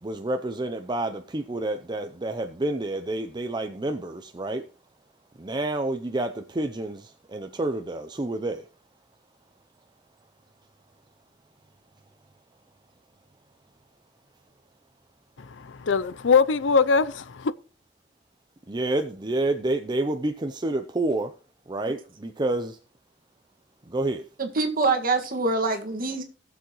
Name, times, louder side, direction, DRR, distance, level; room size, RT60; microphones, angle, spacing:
voice 1, 0.0-4.7 5.4-8.7 18.7-21.3 21.7-22.8 23.9-24.2, right 2 dB, 25° right, 0.6 m, -29 dB
voice 2, 15.4-17.5, left 5 dB, 75° left, 0.6 m, -22 dB
voice 3, 24.4-26.2, right 3 dB, 50° right, 1.9 m, -25 dB
19.0 x 7.1 x 3.1 m
head